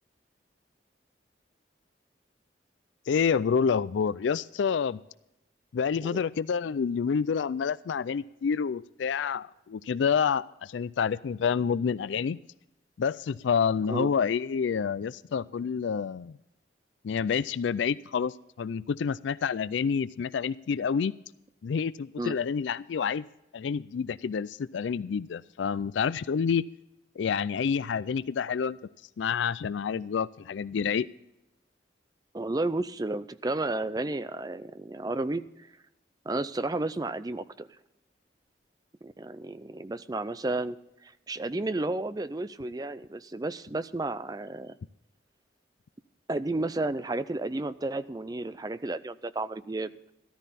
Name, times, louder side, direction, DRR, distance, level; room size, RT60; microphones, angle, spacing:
voice 1, 3.1-5.0 5.7-12.4 13.0-16.4 17.0-21.1 21.6-23.2 23.5-26.7 27.2-28.8 29.2-31.1, left 6 dB, 80° left, 18 dB, 0.4 m, -28 dB
voice 2, 32.3-35.5 36.3-37.7 39.0-40.8 41.0-44.8 46.3-49.9, right 2 dB, 20° right, 14 dB, 0.4 m, -32 dB
13.5 x 13.0 x 4.1 m, 0.87 s
head